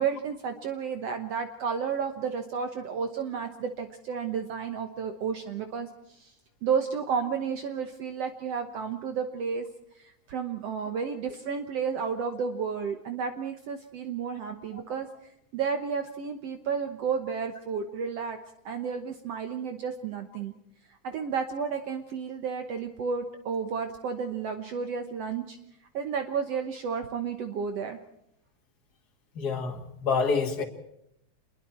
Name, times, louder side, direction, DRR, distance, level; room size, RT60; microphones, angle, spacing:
voice 1, 0.0-6.3 6.6-9.7 10.0-15.1 15.5-18.4 18.7-20.5 21.0-25.6 25.9-28.0, right 6 dB, 65° right, 6 dB, 2.0 m, -32 dB
voice 2, 29.4-30.6, left 5 dB, 35° left, 3 dB, 2.6 m, -27 dB
28.0 x 22.0 x 4.4 m, 0.79 s
omnidirectional pair, 3.3 m